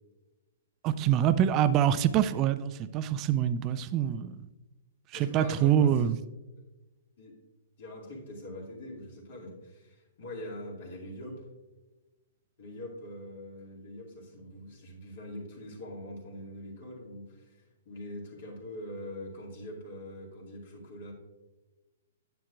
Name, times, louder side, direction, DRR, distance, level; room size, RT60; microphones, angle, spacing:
voice 1, 0.8-4.4 5.1-6.2, right 10 dB, 30° right, 14 dB, 0.4 m, -25 dB
voice 2, 5.1-6.1 7.2-7.3 7.8-11.4 12.6-21.1, left 1 dB, 50° left, -2 dB, 2.2 m, -43 dB
9.9 x 8.2 x 2.4 m, 1.1 s
figure-of-eight pair, 115°, 0 cm